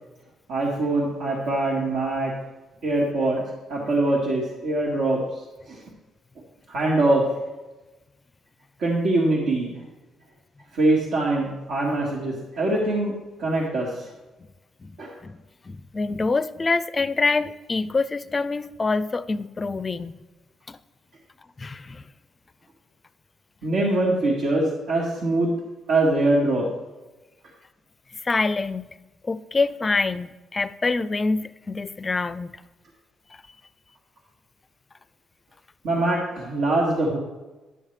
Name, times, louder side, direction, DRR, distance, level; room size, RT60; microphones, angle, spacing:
voice 1, 0.5-2.3 2.8-3.4 3.7-5.4 5.7-5.8 6.7-7.3 8.8-9.7 10.7-14.1 15.0-15.1 23.6-25.5 25.9-26.7 35.8-37.2, right 2 dB, 80° right, -4 dB, 1.7 m, -23 dB
voice 2, 15.7-20.1 20.7-20.8 21.6-22.0 28.2-29.0 29.2-32.6, left 3 dB, 30° left, 14 dB, 0.4 m, -26 dB
11.0 x 7.3 x 3.3 m, 1.1 s
cardioid pair, 90°, 0 cm